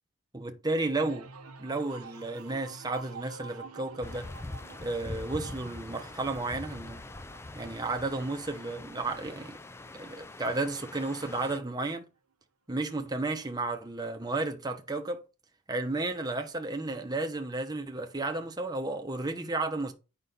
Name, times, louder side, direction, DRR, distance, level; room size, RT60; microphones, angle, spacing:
voice 1, 0.3-1.3 1.6-4.3 4.8-7.1 7.5-9.6 9.9-12.0 12.7-15.2 15.7-19.9, right 2 dB, 15° right, 0.9 m, -33 dB
sound 1, 0.9-10.5 10.9-11.4, right 4 dB, 80° right, 0.8 m, -50 dB
sound 2, 4.0-11.6, left 2 dB, 10° left, 0.3 m, -43 dB
8.3 x 5.5 x 4.0 m
head